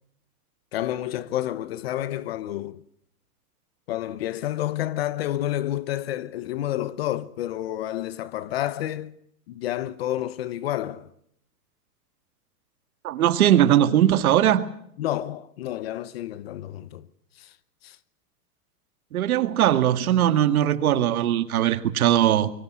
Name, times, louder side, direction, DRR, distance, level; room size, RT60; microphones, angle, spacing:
voice 1, 0.7-2.8 3.9-9.1 9.5-11.1 15.0-17.1 17.4-17.5 17.8-18.0, left 13 dB, 40° left, 0.9 m, -29 dB
voice 2, 13.0-14.6 19.1-22.5, right 11 dB, 65° right, 2.1 m, -20 dB
27.0 x 23.0 x 6.3 m
supercardioid pair, 175°, 47 cm